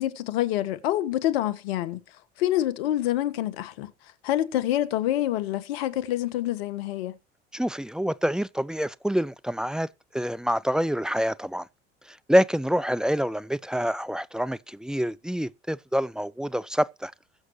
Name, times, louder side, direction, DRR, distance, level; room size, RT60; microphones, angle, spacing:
voice 1, 0.0-2.0 2.4-3.9 4.2-7.2, left 13 dB, 65° left, 1.4 m, -26 dB
voice 2, 7.5-9.9 10.1-11.7 12.1-17.1, equal, ahead, 0.6 m, -26 dB
21.0 x 7.6 x 3.1 m
figure-of-eight pair, 70°, 33 cm